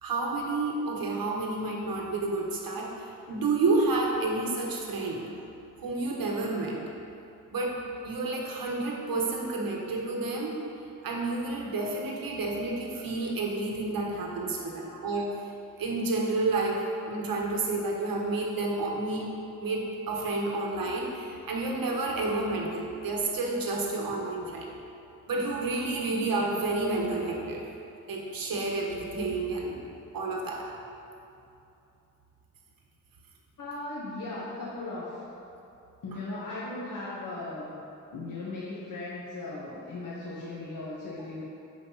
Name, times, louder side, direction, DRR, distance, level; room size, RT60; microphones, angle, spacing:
voice 1, 0.0-5.3 5.8-6.8 7.5-7.8 8.0-10.6 11.0-15.3 15.8-19.3 19.6-24.7 25.3-27.7 28.1-29.8 30.1-30.7, right 3 dB, 80° right, -1 dB, 1.5 m, -30 dB
voice 2, 33.6-35.2 36.0-37.7 38.1-41.4, left 2 dB, 65° left, -8 dB, 1.5 m, -37 dB
11.0 x 5.1 x 4.2 m, 2.8 s
cardioid pair, 75°, 34 cm